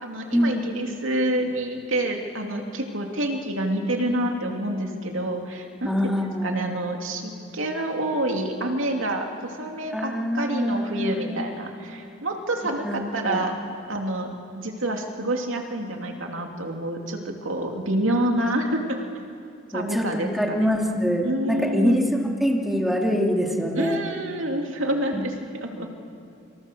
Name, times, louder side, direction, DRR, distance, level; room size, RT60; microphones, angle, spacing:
voice 1, 0.0-6.2 6.4-13.6 13.9-19.0 19.7-20.7 21.2-22.0 23.7-25.9, right 1 dB, 70° right, 2 dB, 2.8 m, -28 dB
voice 2, 5.8-6.6 9.9-11.4 12.8-13.4 19.7-22.1 22.4-24.0 25.1-25.2 25.8-25.9, equal, ahead, 0 dB, 2.6 m, -24 dB
26.5 x 26.0 x 6.9 m, 2.5 s
head